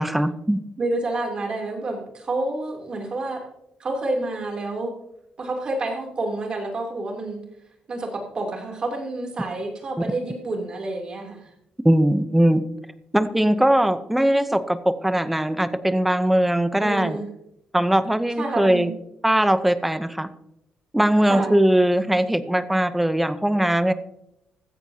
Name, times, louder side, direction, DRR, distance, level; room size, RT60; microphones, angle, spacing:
voice 1, 0.0-0.6 11.8-12.6 13.1-17.2 17.7-18.9 19.2-20.3 20.9-23.9, right 1 dB, 5° right, 12 dB, 0.7 m, -20 dB
voice 2, 0.8-3.4 3.8-4.9 5.4-7.4 7.9-11.5 16.8-17.3 18.4-18.9 21.3-21.6, right 2 dB, 35° right, 1 dB, 3.0 m, -29 dB
15.5 x 14.0 x 2.8 m, 0.80 s
cardioid pair, 150°, 3 cm